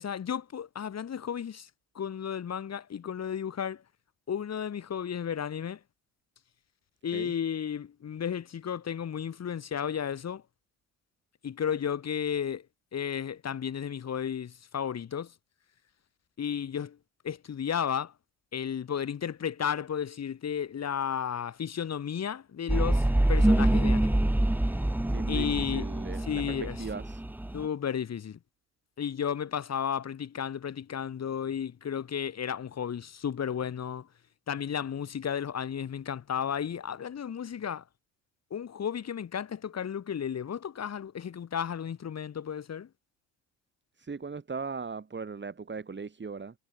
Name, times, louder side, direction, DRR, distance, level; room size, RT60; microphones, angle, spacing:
voice 1, 0.0-1.7 1.9-3.8 4.3-5.8 7.0-10.4 11.4-12.6 12.9-15.3 16.4-17.0 17.2-18.1 18.5-24.2 25.3-25.8 26.3-26.8 27.5-28.4 29.0-34.1 34.5-37.8 38.5-42.9, left 8 dB, 40° left, 3.3 m, -33 dB
sound 1, 22.7-27.6, right 1 dB, 5° right, 1.1 m, -26 dB
voice 2, 25.1-27.2 44.0-46.5, right 4 dB, 30° right, 7.9 m, -38 dB
hypercardioid pair, 65°, 38 cm